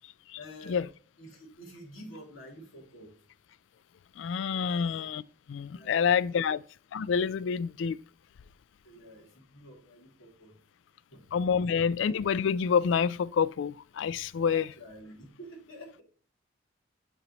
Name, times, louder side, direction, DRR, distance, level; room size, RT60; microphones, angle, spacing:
voice 1, 0.3-0.8 1.2-3.1 4.6-4.9 5.7-6.5 8.8-10.6 11.1-11.3 14.5-16.0, equal, 80° left, 2.9 m, -49 dB
voice 2, 4.2-5.2 5.5-6.6 6.9-8.0 11.3-14.7, left 6 dB, 65° left, 0.3 m, -27 dB
10.5 x 4.4 x 3.0 m
head